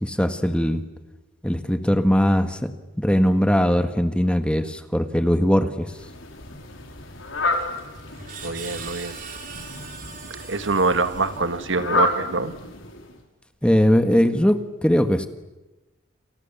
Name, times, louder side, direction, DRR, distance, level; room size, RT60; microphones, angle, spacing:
voice 1, 0.0-0.8 1.4-2.6 3.0-5.9 13.6-15.3, equal, 5° left, 8 dB, 1.6 m, -20 dB
Fowl, 5.9-13.2, left 2 dB, 70° left, 5.0 m, -31 dB
Screech, 7.5-11.8, right 6 dB, 40° right, 4.9 m, -41 dB
voice 2, 8.4-9.2 10.5-12.5, right 3 dB, 65° right, 10 dB, 1.6 m, -24 dB
29.5 x 28.0 x 7.2 m, 1.1 s
head